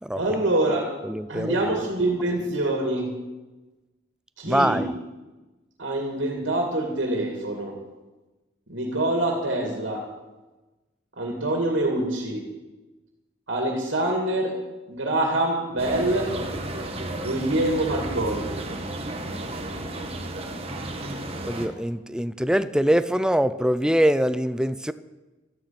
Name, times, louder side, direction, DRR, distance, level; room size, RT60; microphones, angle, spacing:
voice 1, 0.2-1.0 1.3-3.1 4.4-4.8 5.8-7.8 8.7-10.0 11.1-12.5 13.5-14.5 14.9-16.3 17.2-18.5, right 1 dB, 70° right, 1 dB, 2.7 m, -25 dB
voice 2, 1.1-1.5 4.4-4.9 21.5-24.9, equal, 5° right, 13 dB, 0.5 m, -23 dB
sound 1, 15.8-21.7, right 1 dB, 30° right, 1.6 m, -33 dB
15.5 x 13.0 x 6.0 m, 1.1 s
head